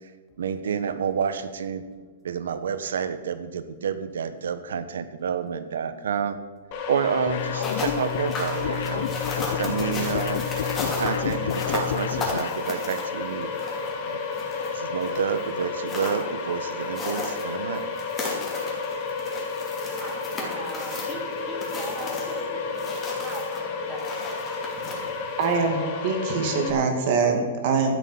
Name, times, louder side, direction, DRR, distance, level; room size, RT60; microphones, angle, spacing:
voice 1, 0.4-1.8 2.2-6.4 6.9-9.2 9.6-10.4 10.9-13.5 14.1-14.2 14.7-17.8, right 7 dB, 90° right, 11 dB, 1.2 m, -29 dB
sound 1, 6.7-26.7, left 4 dB, 35° left, 2.0 m, -31 dB
sound 2, 7.3-12.6, left 11 dB, 60° left, 0.6 m, -31 dB
sound 3, 7.4-25.7, left 2 dB, 15° left, 2.7 m, -36 dB
voice 2, 20.0-24.3, right 2 dB, 15° right, 2 dB, 2.1 m, -40 dB
voice 3, 25.4-28.0, right 4 dB, 45° right, 4 dB, 2.2 m, -24 dB
12.0 x 8.2 x 7.2 m, 1.4 s
hypercardioid pair, 160°, 0 cm